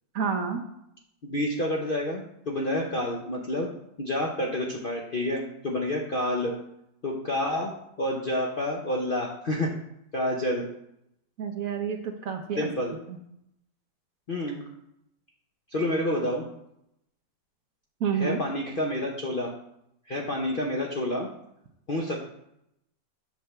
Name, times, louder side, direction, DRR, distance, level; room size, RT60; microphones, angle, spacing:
voice 1, 0.1-0.6 11.4-12.7 13.1-13.2 18.0-18.4, right 6 dB, 60° right, 3 dB, 1.0 m, -29 dB
voice 2, 1.2-3.7 4.0-6.6 7.0-7.7 8.0-9.7 10.1-10.7 12.6-12.9 14.3-14.7 15.7-16.5 18.1-19.5 20.1-21.3 21.9-22.2, left 1 dB, 50° left, -1 dB, 0.6 m, -29 dB
7.9 x 3.3 x 6.5 m, 0.79 s
omnidirectional pair, 1.9 m